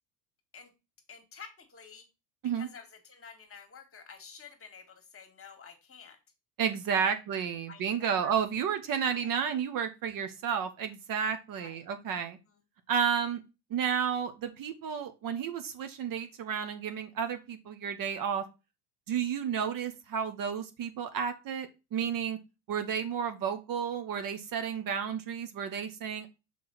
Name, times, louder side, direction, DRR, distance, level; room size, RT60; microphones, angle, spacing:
voice 1, 1.1-2.1 2.5-6.2 7.0-7.1 7.7-8.6 8.9-9.3 11.6-11.8, left 6 dB, 30° left, 6 dB, 1.8 m, -50 dB
voice 2, 6.6-12.4 12.9-13.4 13.7-18.5 19.1-22.4 22.7-26.3, right 7 dB, 45° right, 8 dB, 1.0 m, -32 dB
5.5 x 4.7 x 4.0 m, 0.27 s
hypercardioid pair, 80°, 48 cm